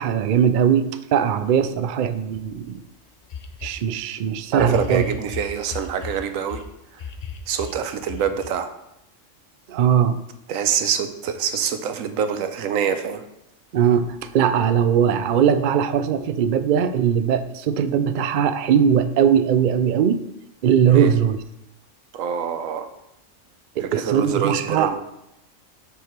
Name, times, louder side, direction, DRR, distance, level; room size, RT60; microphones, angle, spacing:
voice 1, 0.0-2.8 3.6-5.0 9.7-10.2 13.7-20.2 20.6-21.4 23.8-24.9, right 8 dB, 65° right, 11 dB, 0.5 m, -20 dB
sound 1, 2.7-2.8 3.3-3.9 4.5-6.7 7.0-8.5, left 6 dB, 50° left, 0.4 m, -35 dB
voice 2, 4.5-6.6 6.9-7.0 7.5-8.7 10.5-13.2 20.9-21.1 22.1-22.9 23.8-25.0, right 8 dB, 85° right, 9 dB, 1.1 m, -25 dB
6.3 x 5.4 x 4.4 m, 0.86 s
omnidirectional pair, 1.3 m